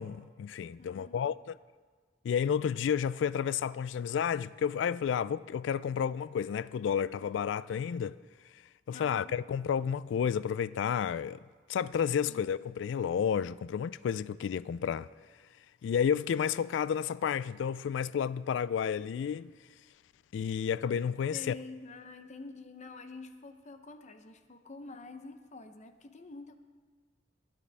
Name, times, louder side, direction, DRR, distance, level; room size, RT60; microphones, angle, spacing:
voice 1, 0.0-1.5 2.2-8.2 8.9-11.4 11.7-15.1 15.8-19.5 20.3-21.6, left 7 dB, 90° left, 0.3 m, -31 dB
voice 2, 0.8-1.2 8.9-9.4 12.3-12.5 21.3-26.6, left 3 dB, 40° left, 0.7 m, -47 dB
21.0 x 9.7 x 3.4 m
head